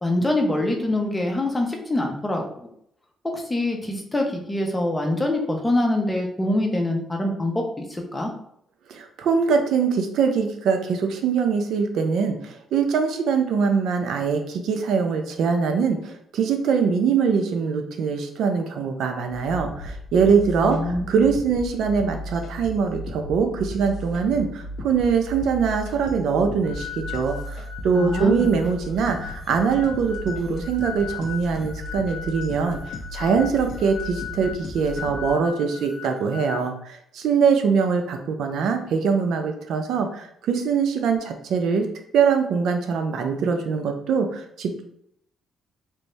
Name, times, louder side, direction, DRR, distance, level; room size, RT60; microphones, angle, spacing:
voice 1, 0.0-2.4 3.2-8.3 20.6-21.1 27.9-28.5, left 1 dB, 15° left, 2 dB, 0.8 m, -24 dB
voice 2, 8.9-32.8 33.1-41.9 42.1-44.8, right 5 dB, 75° right, 5 dB, 0.5 m, -23 dB
sound 1, 19.3-35.3, left 1 dB, 70° left, 0.5 m, -36 dB
sound 2, 26.6-36.7, left 7 dB, 45° left, 0.9 m, -38 dB
3.3 x 2.6 x 3.1 m, 0.71 s
cardioid pair, 90°, 0 cm